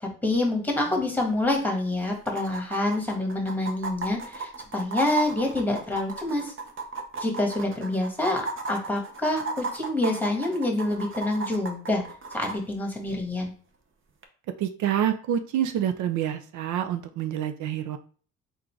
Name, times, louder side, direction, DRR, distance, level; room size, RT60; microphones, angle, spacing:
voice 1, 0.0-6.5 7.2-12.0 12.3-13.5, left 2 dB, 5° left, 1 dB, 1.3 m, -27 dB
sound 1, 1.2-1.3 1.5-1.6 2.3-12.6 14.2-14.3, right 3 dB, 40° right, 0.8 m, -35 dB
voice 2, 14.6-18.0, right 10 dB, 75° right, 8 dB, 0.5 m, -27 dB
3.8 x 2.5 x 4.4 m, 0.43 s
cardioid pair, 90°, 30 cm